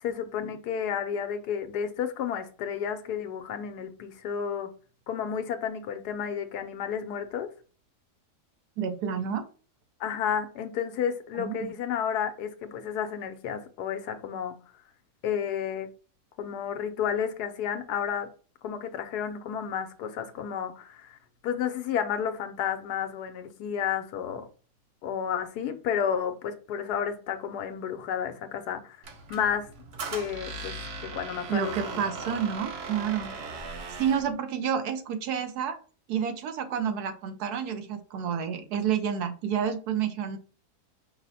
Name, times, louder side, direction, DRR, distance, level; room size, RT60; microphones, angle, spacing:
voice 1, 0.0-4.7 5.1-7.5 10.0-14.6 15.2-15.9 16.4-18.3 18.6-24.5 25.0-29.0 29.3-29.7 30.1-32.3, left 8 dB, 85° left, 1.2 m, -31 dB
voice 2, 8.8-9.4 11.4-11.7 31.5-33.3 34.0-35.8 36.1-40.4, right 8 dB, 75° right, 1.2 m, -29 dB
Squeak, 29.0-34.3, right 4 dB, 55° right, 0.8 m, -38 dB
5.3 x 2.1 x 4.1 m
omnidirectional pair, 1.7 m